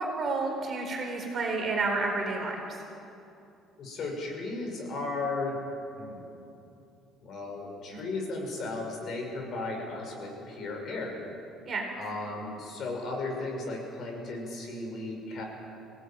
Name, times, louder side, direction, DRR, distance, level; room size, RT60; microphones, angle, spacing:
voice 1, 0.0-2.8 7.9-8.0 11.7-11.9, right 3 dB, 35° right, 1 dB, 4.3 m, -30 dB
voice 2, 3.8-5.6 6.0-6.3 7.2-11.2 12.0-15.4, left 2 dB, 40° left, 1 dB, 5.9 m, -35 dB
26.0 x 18.0 x 9.0 m, 2.7 s
cardioid pair, 160°, 0 cm